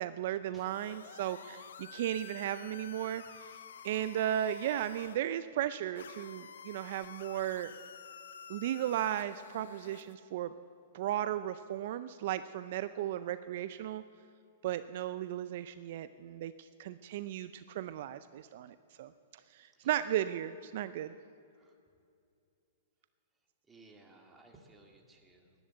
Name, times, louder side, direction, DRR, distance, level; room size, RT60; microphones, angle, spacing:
voice 1, 0.0-3.2 3.8-7.7 8.5-10.5 10.9-14.0 14.6-19.1 19.5-21.1, right 11 dB, 55° right, 13 dB, 0.4 m, -35 dB
sound 1, 0.5-5.2 6.0-10.1, left 7 dB, 75° left, 0.8 m, -50 dB
voice 2, 23.7-25.5, right 2 dB, 10° right, 1 dB, 1.9 m, -59 dB
13.5 x 11.0 x 8.2 m, 2.5 s
hypercardioid pair, 135°, 0 cm